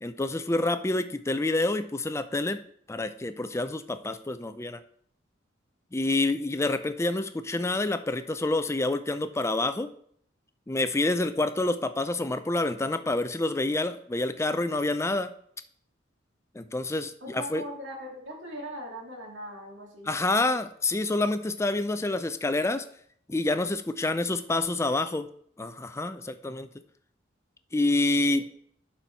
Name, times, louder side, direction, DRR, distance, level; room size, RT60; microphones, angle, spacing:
voice 1, 0.0-2.6 2.9-4.8 5.9-9.9 10.7-15.3 16.6-17.6 20.1-22.8 23.3-25.3 25.6-26.7 27.7-28.5, left 2 dB, 15° left, 11 dB, 0.4 m, -27 dB
voice 2, 17.2-20.1, equal, 70° right, -1 dB, 2.5 m, -40 dB
11.0 x 4.5 x 4.5 m, 0.64 s
head